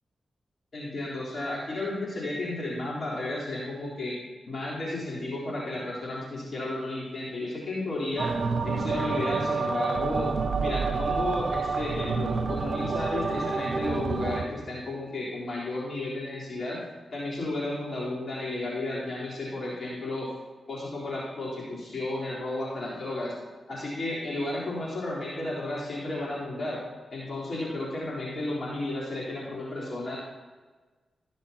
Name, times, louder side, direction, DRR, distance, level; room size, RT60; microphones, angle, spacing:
voice 1, 0.7-4.2 4.5-8.4 8.6-10.3 10.6-16.8 17.1-20.3 20.7-23.3 23.7-26.8 27.1-30.2, left 2 dB, 55° left, -6 dB, 3.7 m, -33 dB
sound 1, 8.2-14.5, right 4 dB, 60° right, 0.9 m, -28 dB
16.0 x 10.0 x 2.9 m, 1.3 s
cardioid pair, 45°, 0 cm